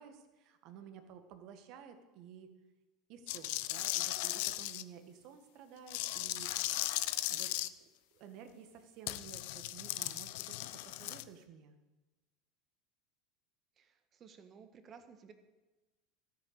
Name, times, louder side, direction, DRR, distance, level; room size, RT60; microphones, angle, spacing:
voice 1, 0.0-2.5 3.1-6.5 7.3-7.5 7.8-7.9 8.1-10.6 10.8-11.7, right 8 dB, 55° right, 7 dB, 1.7 m, -53 dB
sound 1, 3.3-4.8 5.9-7.7 9.1-11.2, left 17 dB, 65° left, 0.5 m, -37 dB
voice 2, 13.8-15.3, right 6 dB, 40° right, 8 dB, 1.6 m, -56 dB
14.0 x 8.6 x 6.6 m, 1.1 s
hypercardioid pair, 80°, 0 cm